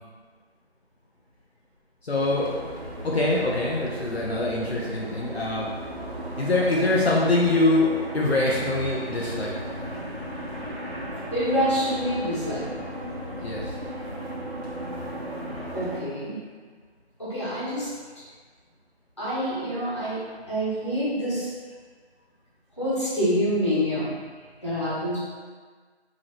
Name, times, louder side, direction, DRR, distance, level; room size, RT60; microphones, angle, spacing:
voice 1, 2.0-2.5 3.0-5.7 6.4-9.5 13.4-13.7, left 2 dB, 65° left, -4 dB, 0.7 m, -24 dB
sound 1, 2.1-16.0, equal, 65° right, 1.2 m, -35 dB
voice 2, 11.3-12.6 15.7-16.4 17.2-17.9 19.2-21.5 22.8-24.1 24.6-25.2, equal, 25° left, -11 dB, 1.2 m, -26 dB
4.9 x 2.9 x 2.9 m, 1.5 s
figure-of-eight pair, 170°, 33 cm